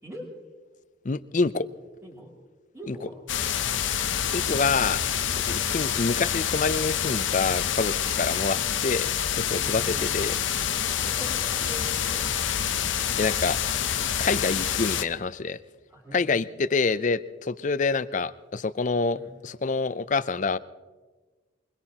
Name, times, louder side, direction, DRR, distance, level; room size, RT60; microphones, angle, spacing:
voice 1, 1.0-1.7 2.9-3.0 4.3-5.0 5.5-9.1 9.4-10.3 13.2-13.6 14.2-15.6 16.1-20.6, left 4 dB, 40° left, 15 dB, 0.5 m, -27 dB
voice 2, 2.0-2.3 2.7-3.2 9.6-10.2 10.9-12.5 14.1-14.4 15.9-16.4 19.1-19.3, equal, 15° right, -7 dB, 2.8 m, -43 dB
sound 1, 3.3-15.0, left 9 dB, 75° left, 0.7 m, -27 dB
23.0 x 21.5 x 2.9 m, 1.3 s
head